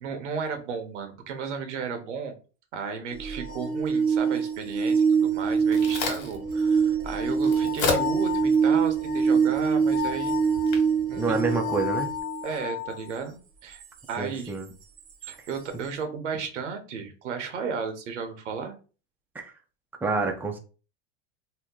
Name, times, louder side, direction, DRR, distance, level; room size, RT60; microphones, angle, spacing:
voice 1, 0.0-2.4 2.7-10.5 11.1-11.4 12.4-14.5 15.2-18.7, right 6 dB, 90° right, 6 dB, 0.9 m, -34 dB
sound 1, 3.2-12.9 15.2-15.3, right 5 dB, 40° right, 0.9 m, -24 dB
Crack, 5.3-12.2, left 4 dB, 70° left, 1.3 m, -35 dB
voice 2, 11.2-12.1 14.2-14.7 19.3-19.5 20.0-20.6, right 3 dB, 5° right, 2 dB, 0.6 m, -27 dB
2.9 x 2.2 x 3.6 m, 0.35 s
hypercardioid pair, 100°, 35 cm